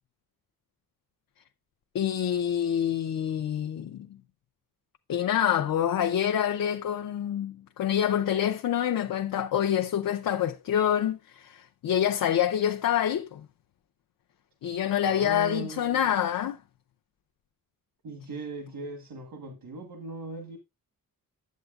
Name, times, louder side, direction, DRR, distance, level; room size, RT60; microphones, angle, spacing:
voice 1, 1.9-4.1 5.1-13.5 14.6-16.6, left 10 dB, 70° left, 0.6 m, -26 dB
voice 2, 15.0-16.2 18.0-20.6, right 2 dB, 70° right, 1.3 m, -39 dB
9.2 x 7.8 x 2.4 m
wide cardioid pair, 175°, 35 cm